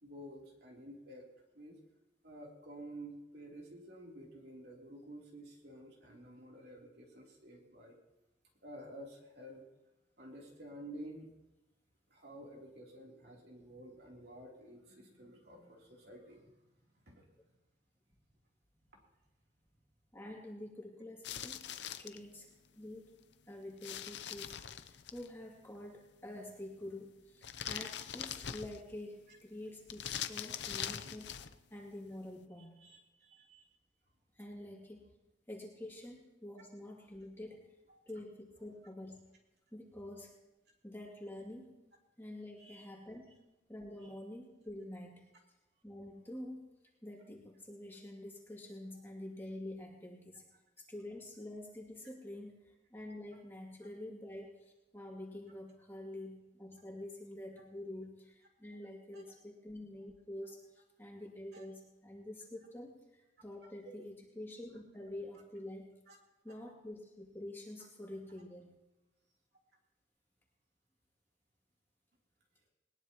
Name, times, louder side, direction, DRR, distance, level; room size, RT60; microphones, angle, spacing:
voice 1, 0.0-1.3 1.5-1.8 2.2-8.0 8.6-9.6 10.2-11.3 12.1-16.5 17.0-17.2 32.8-33.6 37.9-38.0 42.6-42.9 44.0-44.1 57.6-57.7 59.1-59.2 61.5-61.6 66.1-66.2, right 1 dB, 60° right, -2 dB, 3.3 m, -51 dB
voice 2, 20.1-21.6 21.8-22.5 22.7-23.1 23.5-31.4 31.7-32.8 34.4-35.1 35.5-37.7 38.1-39.2 39.7-40.3 40.8-41.7 42.2-43.3 43.7-45.2 45.8-46.7 47.0-50.4 50.8-60.6 61.0-65.9 66.4-68.7, left 1 dB, 10° left, -2 dB, 2.5 m, -47 dB
sound 1, 21.2-22.2 23.8-25.3 27.4-29.0 29.9-31.6, left 9 dB, 70° left, 0.7 m, -42 dB
20.5 x 20.0 x 3.0 m, 1.0 s
head